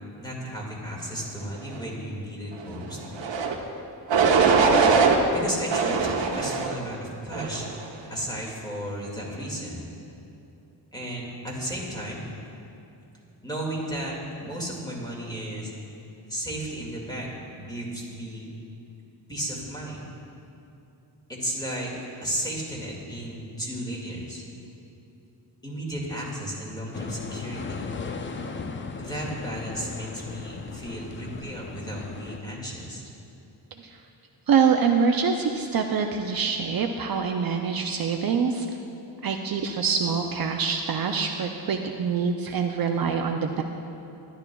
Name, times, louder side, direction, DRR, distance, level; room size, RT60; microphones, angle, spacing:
voice 1, 0.2-3.0 5.3-7.7 8.1-9.8 10.9-12.3 13.4-15.7 16.3-18.4 19.3-20.1 21.3-21.9 22.2-24.4 25.6-27.9 29.0-33.0, right 1 dB, 10° left, -3 dB, 2.0 m, -34 dB
sound 1, 3.2-3.6 4.1-5.2 5.7-6.8 7.3-7.8, right 5 dB, 75° right, 0.9 m, -21 dB
sound 2, 26.9-32.4, left 4 dB, 30° left, 0.4 m, -37 dB
voice 2, 34.5-38.7 39.2-43.6, right 6 dB, 55° right, 3 dB, 0.5 m, -25 dB
12.5 x 11.5 x 2.3 m, 2.8 s
wide cardioid pair, 115°, 44 cm